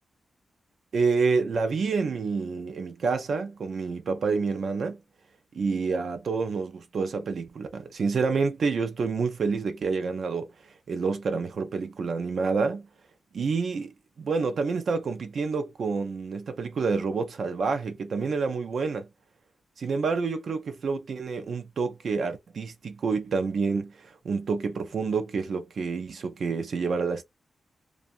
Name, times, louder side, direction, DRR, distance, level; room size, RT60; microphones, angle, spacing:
voice 1, 0.9-5.0 5.5-10.5 10.9-12.9 13.3-13.9 14.2-19.1 19.8-27.2, right 4 dB, 65° right, 0.5 m, -28 dB
2.6 x 2.3 x 2.5 m
wide cardioid pair, 125°, 0 cm